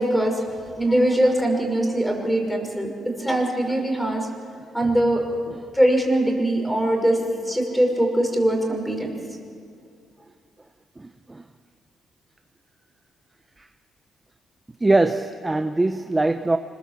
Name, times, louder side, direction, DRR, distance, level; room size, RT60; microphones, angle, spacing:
voice 1, 0.0-2.9 3.2-4.3 4.7-5.2 5.7-7.2 7.5-9.1, right 1 dB, 5° left, 2 dB, 5.6 m, -22 dB
voice 2, 11.0-11.4 13.6-13.7 14.8-16.6, right 2 dB, 15° right, 8 dB, 0.9 m, -22 dB
26.0 x 21.5 x 7.6 m, 2.3 s
cardioid pair, 90°, 0 cm